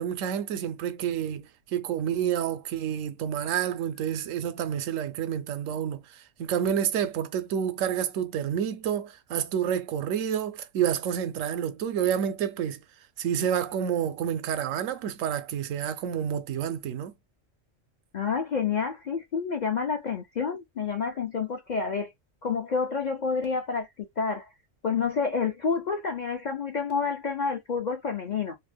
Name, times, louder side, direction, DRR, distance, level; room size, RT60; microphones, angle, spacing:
voice 1, 0.0-12.8 13.2-17.1, right 9 dB, 85° right, 0.9 m, -29 dB
voice 2, 18.1-22.1 22.4-23.9 24.2-24.5 24.8-28.5, left 5 dB, 55° left, 0.5 m, -29 dB
2.7 x 2.0 x 3.3 m
omnidirectional pair, 1.3 m